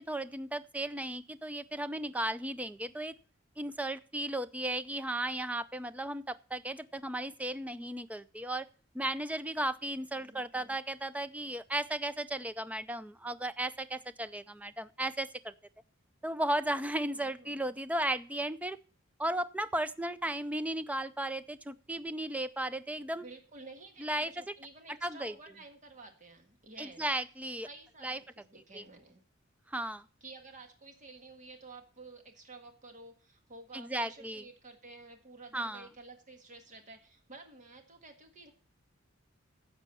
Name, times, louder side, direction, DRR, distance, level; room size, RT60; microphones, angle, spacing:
voice 1, 0.0-3.1 3.6-8.7 8.9-15.5 16.2-18.8 19.2-23.3 24.0-24.4 25.0-25.3 26.8-27.7 28.0-28.2 28.7-28.8 29.7-30.0 33.7-34.4 35.5-35.9, right 1 dB, 5° right, 14 dB, 0.5 m, -35 dB
voice 2, 10.1-10.8 17.1-17.8 23.2-27.1 27.7-29.2 30.2-38.5, right 3 dB, 40° right, 6 dB, 1.7 m, -52 dB
10.5 x 7.3 x 6.9 m, 0.38 s
head